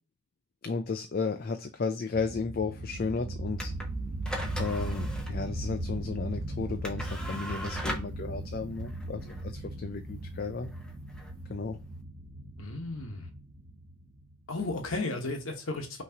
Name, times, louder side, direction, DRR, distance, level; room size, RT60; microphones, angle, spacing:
voice 1, 0.6-3.7 4.6-10.7 11.5-11.8, left 4 dB, 40° left, 0.4 m, -34 dB
sound 1, 2.1-14.5, right 1 dB, 80° right, 1.5 m, -38 dB
sound 2, 3.5-12.0, equal, 5° left, 0.7 m, -41 dB
voice 2, 12.6-13.2 14.5-16.0, left 2 dB, 65° left, 1.0 m, -34 dB
5.7 x 3.1 x 2.8 m
head